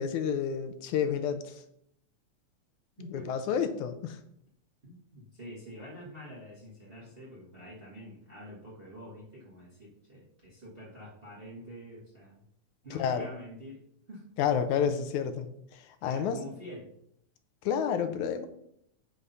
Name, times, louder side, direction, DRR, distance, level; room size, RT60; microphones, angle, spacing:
voice 1, 0.0-1.6 3.1-4.2 12.9-13.3 14.4-15.5 15.7-16.4 17.6-18.5, left 7 dB, 85° left, 8 dB, 2.1 m, -30 dB
voice 2, 4.8-12.5 12.8-13.8 14.1-14.2 14.8-14.9 16.0-16.9, equal, 30° right, -6 dB, 1.2 m, -46 dB
8.5 x 3.6 x 5.4 m, 0.72 s
omnidirectional pair, 3.4 m